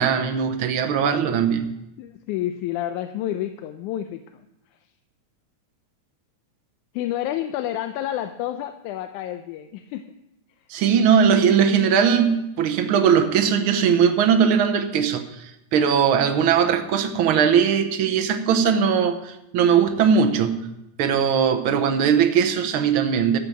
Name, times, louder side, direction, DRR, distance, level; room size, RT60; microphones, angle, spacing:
voice 1, 0.0-1.7 10.7-20.7 21.0-23.4, right 7 dB, 75° right, 1.2 m, -20 dB
voice 2, 2.0-4.4 6.9-10.1, left 12 dB, 90° left, 2.0 m, -29 dB
13.5 x 8.1 x 6.0 m
omnidirectional pair, 3.4 m